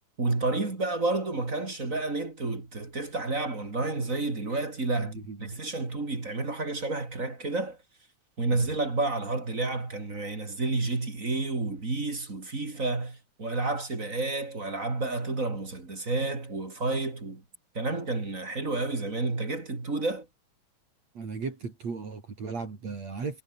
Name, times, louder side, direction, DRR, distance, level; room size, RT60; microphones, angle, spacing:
voice 1, 0.2-7.8 8.4-17.4 17.8-20.3, right 3 dB, 25° right, 3.5 m, -30 dB
voice 2, 5.0-5.5 8.5-8.6 21.2-23.4, right 4 dB, 60° right, 5.6 m, -36 dB
omnidirectional pair, 3.5 m